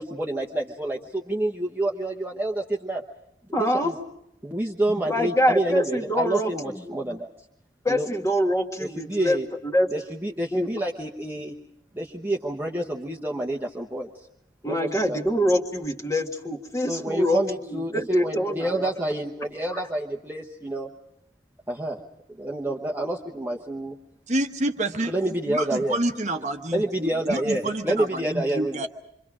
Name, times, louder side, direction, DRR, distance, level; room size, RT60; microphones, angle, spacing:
voice 1, 0.0-3.0 3.6-3.9 4.4-7.3 7.9-8.1 8.8-9.5 9.9-11.5 11.9-14.1 14.6-15.2 16.9-20.9 21.7-22.0 22.4-23.9 25.1-26.0 26.7-28.9, right 1 dB, 10° right, -2 dB, 1.1 m, -28 dB
voice 2, 3.5-3.9 5.0-6.9 7.9-9.4 9.6-9.9 10.5-10.7 14.6-18.9 19.7-19.8, equal, 15° left, 3 dB, 1.8 m, -25 dB
voice 3, 24.3-25.1 25.5-26.8 27.3-28.9, right 1 dB, 40° right, 6 dB, 1.1 m, -28 dB
28.0 x 25.0 x 5.0 m, 0.77 s
head